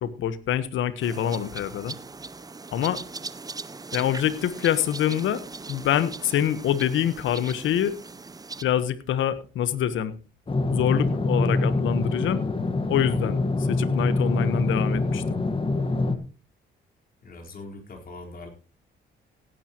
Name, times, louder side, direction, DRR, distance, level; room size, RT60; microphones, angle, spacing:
voice 1, 0.0-2.0 2.7-3.0 3.9-5.4 5.7-8.0 8.6-10.1 10.7-12.4 12.9-15.4, left 10 dB, 75° left, 14 dB, 1.2 m, -25 dB
sound 1, 1.0-8.6, right 3 dB, 20° right, 0.7 m, -40 dB
sound 2, 10.5-16.2, left 2 dB, 25° left, 1.5 m, -25 dB
voice 2, 17.2-18.5, left 2 dB, 45° left, 1 dB, 4.3 m, -41 dB
17.0 x 10.5 x 3.0 m, 0.33 s
cardioid pair, 90°, 20 cm